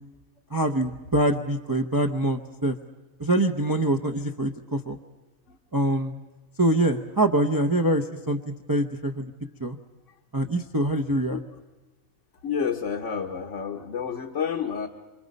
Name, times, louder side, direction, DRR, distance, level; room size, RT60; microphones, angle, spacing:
voice 1, 0.5-2.8 3.2-5.0 5.7-6.2 6.6-8.4 8.7-9.3 9.6-9.8 10.3-11.4, right 1 dB, 20° right, 5 dB, 0.6 m, -24 dB
voice 2, 12.4-14.9, left 7 dB, 65° left, 1 dB, 1.4 m, -29 dB
28.0 x 25.0 x 5.3 m, 1.1 s
omnidirectional pair, 1.4 m